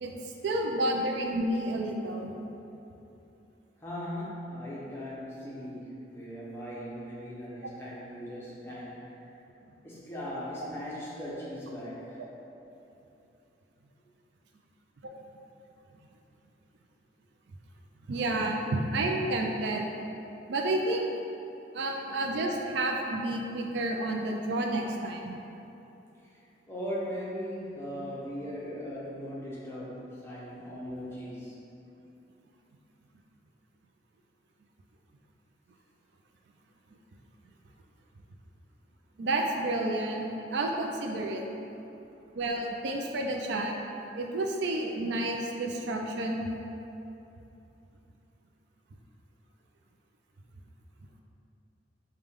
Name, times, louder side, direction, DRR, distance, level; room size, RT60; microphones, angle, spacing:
voice 1, 0.0-2.3 12.2-12.3 18.1-19.9 20.5-21.0 21.7-25.4 39.2-41.4 42.3-46.5, right 2 dB, 70° right, 2 dB, 0.4 m, -30 dB
voice 2, 3.8-9.3 9.8-12.2 26.2-31.6 42.4-42.5 43.1-43.2, equal, 15° left, -7 dB, 0.7 m, -39 dB
5.0 x 2.2 x 3.5 m, 2.9 s
head